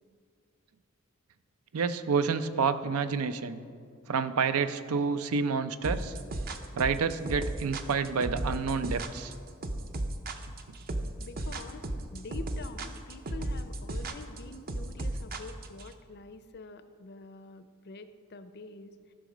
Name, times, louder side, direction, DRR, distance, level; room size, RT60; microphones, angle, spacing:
voice 1, 1.7-3.6 4.1-6.1 6.7-9.3, right 5 dB, 85° right, 12 dB, 0.5 m, -29 dB
sound 1, 5.8-15.9, right 1 dB, 45° right, 0.6 m, -34 dB
voice 2, 11.1-19.0, left 3 dB, 50° left, 11 dB, 0.5 m, -46 dB
13.5 x 6.2 x 5.0 m, 2.2 s
head